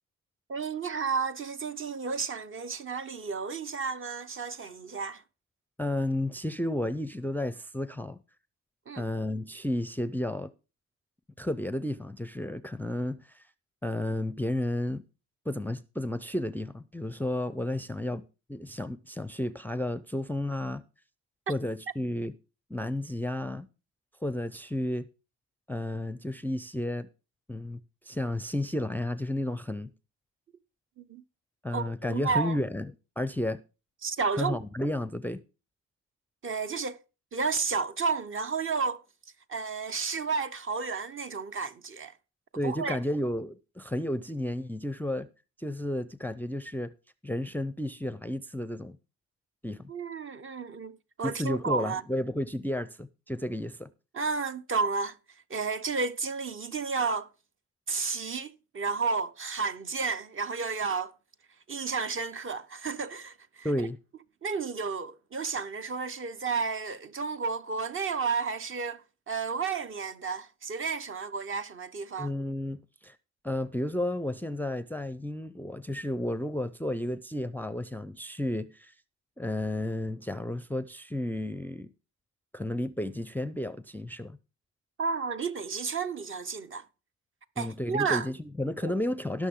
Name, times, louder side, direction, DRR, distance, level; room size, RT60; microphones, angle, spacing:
voice 1, 0.5-5.2 8.9-9.0 31.0-31.2 31.7-32.6 34.0-34.6 36.4-37.0 37.3-39.0 39.5-42.1 42.6-43.0 49.9-52.0 54.1-55.2 55.5-57.3 57.9-61.1 61.7-63.7 64.4-69.0 69.3-72.3 85.0-86.8 87.6-88.3 88.8-88.9, right 5 dB, 45° right, 1.0 m, -32 dB
voice 2, 5.8-8.2 9.0-10.5 11.4-13.4 13.8-15.0 15.5-18.2 18.5-20.8 21.5-22.3 22.7-23.7 24.2-25.1 25.7-27.1 27.5-27.8 28.0-29.9 31.6-32.9 33.2-33.6 34.3-35.4 42.6-45.3 45.6-46.9 47.2-49.0 49.6-49.9 51.2-53.9 63.6-64.0 72.2-73.2 73.4-78.9 79.4-81.9 82.5-84.4 87.6-89.5, left 1 dB, 5° left, 0.5 m, -32 dB
18.0 x 6.3 x 3.7 m
cardioid pair, 90°, 30 cm